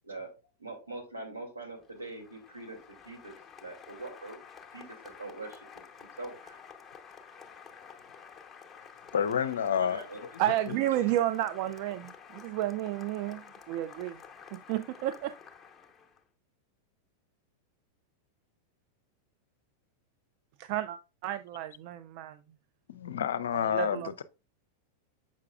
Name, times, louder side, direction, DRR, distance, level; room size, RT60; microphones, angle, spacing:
voice 1, 0.6-3.3 3.6-4.4 4.7-6.6 9.7-10.2, right 2 dB, 80° right, 2.4 m, -43 dB
Applause, 1.8-16.2, left 6 dB, 15° left, 0.9 m, -51 dB
voice 2, 9.1-10.0 10.7-10.8 22.9-24.2, left 8 dB, 65° left, 0.5 m, -29 dB
voice 3, 10.4-14.2 14.5-15.3 20.6-22.4 23.7-24.2, right 13 dB, 45° right, 0.3 m, -31 dB
7.2 x 5.6 x 2.4 m
figure-of-eight pair, 90°, 0 cm